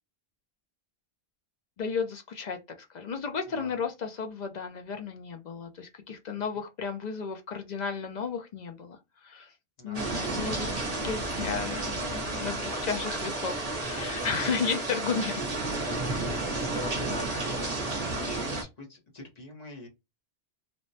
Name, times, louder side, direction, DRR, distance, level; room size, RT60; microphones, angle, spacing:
voice 1, 1.8-2.6 2.9-9.5 9.8-15.4 15.8-16.2, left 5 dB, 55° left, 0.5 m, -34 dB
sound 1, 9.9-18.6, right 2 dB, 40° right, 0.7 m, -32 dB
voice 2, 14.4-14.8 16.3-19.9, left 2 dB, 40° left, 0.9 m, -43 dB
3.1 x 2.1 x 2.6 m
omnidirectional pair, 1.1 m